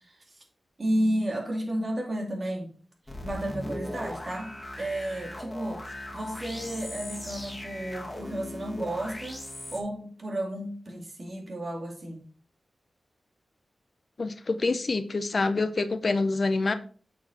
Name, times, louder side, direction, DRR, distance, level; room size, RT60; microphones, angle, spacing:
voice 1, 0.8-2.7 3.2-5.8 6.1-9.4 9.7-12.2, right 1 dB, 45° right, 2.3 m, -32 dB
sound 1, 3.1-9.8, left 1 dB, 15° left, 2.0 m, -39 dB
voice 2, 14.2-16.7, left 3 dB, 55° left, 0.7 m, -26 dB
8.0 x 4.7 x 4.3 m
wide cardioid pair, 70°, 0 cm